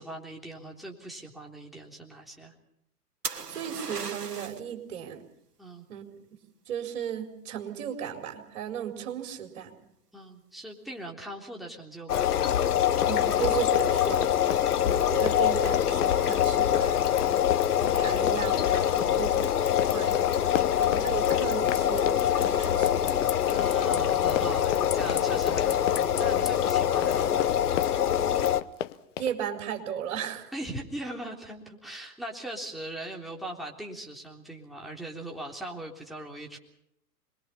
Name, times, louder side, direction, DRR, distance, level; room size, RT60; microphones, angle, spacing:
voice 1, 0.0-2.5 5.6-5.9 10.1-12.5 18.9-19.3 20.5-20.8 23.4-27.8 30.5-36.6, right 1 dB, ahead, -1 dB, 3.6 m, -40 dB
sound 1, 3.2-4.7 8.4-8.8, right 5 dB, 90° right, 1.7 m, -37 dB
voice 2, 3.5-5.2 5.9-6.0 6.7-9.8 13.0-14.3 14.8-17.3 17.8-19.5 19.9-20.1 20.8-23.2 29.2-30.5, right 9 dB, 55° right, 4 dB, 4.6 m, -35 dB
sound 2, 12.1-28.6, left 10 dB, 75° left, 1.0 m, -25 dB
Run, 12.9-29.3, left 11 dB, 50° left, 1.2 m, -35 dB
26.5 x 22.0 x 5.7 m, 0.76 s
figure-of-eight pair, 110°, 46 cm